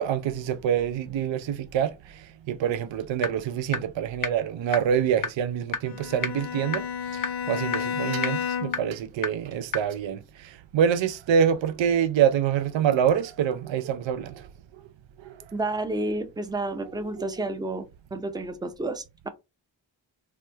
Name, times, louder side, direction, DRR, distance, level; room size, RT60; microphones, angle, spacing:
voice 1, 0.0-1.9 2.5-6.8 7.1-10.2 10.7-14.4 16.8-16.9 17.2-17.3, right 8 dB, 70° right, 0.5 m, -26 dB
sound 1, 3.2-3.3 3.7-3.8 4.2-4.3 4.7-4.8 5.2-5.3 5.7-5.8 6.2-6.3 6.7-6.8 7.2-7.3 7.7-7.8 8.2-8.3 8.7-8.8 9.2-9.3 9.7-9.8, left 5 dB, 45° left, 0.6 m, -26 dB
Bowed string instrument, 5.8-9.0, left 7 dB, 80° left, 0.8 m, -31 dB
voice 2, 15.5-17.9 18.1-19.3, right 2 dB, 10° right, 0.5 m, -30 dB
2.9 x 2.1 x 3.3 m
cardioid pair, 50°, 46 cm